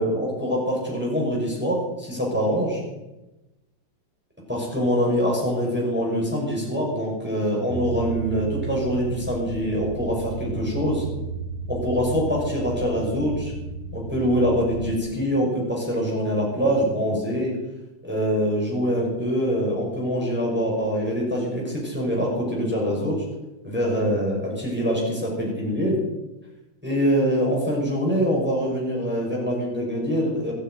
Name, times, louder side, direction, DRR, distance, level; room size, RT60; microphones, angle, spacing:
voice 1, 0.0-2.8 4.5-11.1 11.7-13.5 13.9-17.6 18.0-23.2 23.6-26.0 26.8-30.5, equal, 5° right, -4 dB, 5.4 m, -24 dB
sound 1, 7.7-15.0, right 4 dB, 30° right, 2.5 m, -33 dB
14.5 x 9.5 x 9.2 m, 1.0 s
omnidirectional pair, 2.3 m